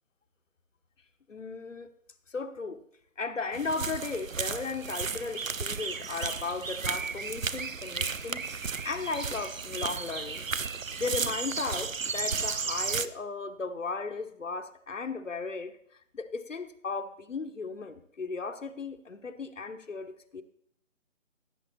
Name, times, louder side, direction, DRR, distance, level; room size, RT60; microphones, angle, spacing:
voice 1, 1.3-1.9 2.3-2.8 3.2-10.5 11.0-15.7 16.1-20.4, left 4 dB, 70° left, 6 dB, 1.2 m, -36 dB
sound 1, 3.5-13.1, right 5 dB, 90° right, 0.8 m, -34 dB
16.0 x 8.0 x 4.2 m, 0.72 s
figure-of-eight pair, 155°, 39 cm